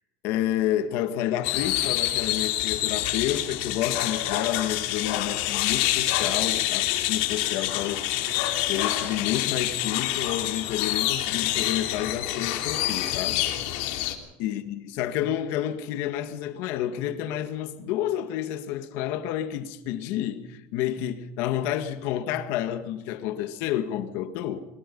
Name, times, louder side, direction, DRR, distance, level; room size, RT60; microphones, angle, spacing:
voice 1, 0.2-13.4 14.4-24.7, left 11 dB, 60° left, 1.8 m, -30 dB
sound 1, 1.4-14.1, left 14 dB, 75° left, 3.1 m, -27 dB
22.5 x 22.0 x 5.5 m
cardioid pair, 165°, 5 cm